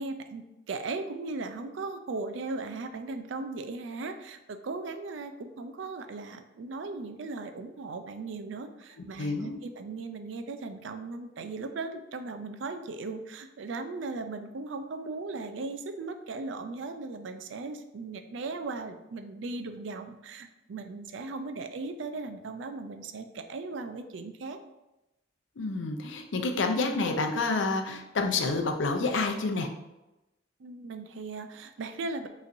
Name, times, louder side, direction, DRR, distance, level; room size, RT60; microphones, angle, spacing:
voice 1, 0.0-24.6 30.6-32.3, right 3 dB, 70° right, 8 dB, 0.4 m, -37 dB
voice 2, 9.2-9.6 25.6-29.7, left 3 dB, 70° left, 5 dB, 0.5 m, -28 dB
5.1 x 3.1 x 2.6 m, 0.96 s
head